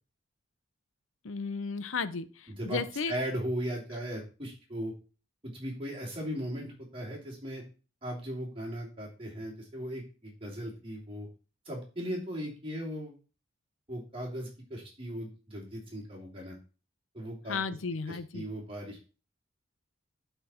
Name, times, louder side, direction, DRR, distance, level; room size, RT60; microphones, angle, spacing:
voice 1, 1.2-3.1 17.5-18.4, left 4 dB, 80° left, 14 dB, 0.7 m, -34 dB
voice 2, 2.5-2.8 3.0-4.9 5.5-7.6 8.0-11.3 11.6-13.1 13.9-16.6 17.1-17.6 18.1-19.0, equal, 25° right, -2 dB, 2.9 m, -37 dB
11.5 x 4.5 x 4.3 m, 0.34 s
head